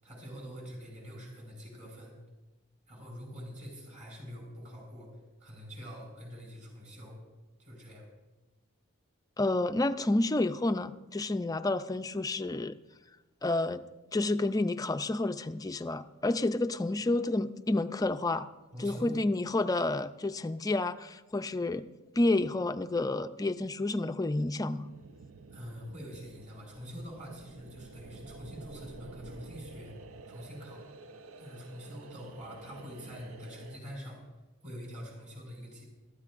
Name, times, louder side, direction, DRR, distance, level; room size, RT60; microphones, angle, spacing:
voice 1, 0.0-2.1 2.9-5.1 5.4-7.2 7.6-8.0 18.7-19.2 25.5-29.9 30.3-30.8 31.4-34.3 34.6-35.9, equal, 35° right, -2 dB, 5.7 m, -45 dB
voice 2, 9.4-12.8 13.4-13.8 14.1-18.5 18.8-21.9 22.1-24.9, left 2 dB, 15° left, 10 dB, 0.4 m, -30 dB
sound 1, 24.5-33.8, right 3 dB, 80° right, 0.6 m, -50 dB
21.5 x 13.5 x 2.5 m, 1.1 s
head